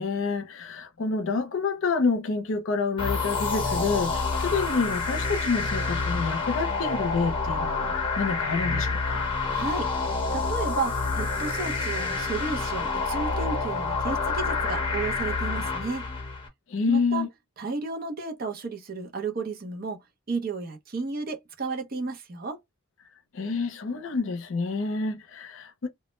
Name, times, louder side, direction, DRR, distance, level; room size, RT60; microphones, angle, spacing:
voice 1, 0.0-9.4 16.7-17.3 23.3-25.9, left 4 dB, 65° left, 0.5 m, -28 dB
sound 1, 3.0-16.5, left 4 dB, 25° left, 0.9 m, -28 dB
voice 2, 9.5-9.9 10.3-16.0 16.9-17.2 17.6-20.0 20.3-22.6, right 4 dB, 40° right, 0.6 m, -33 dB
2.2 x 2.0 x 3.0 m
head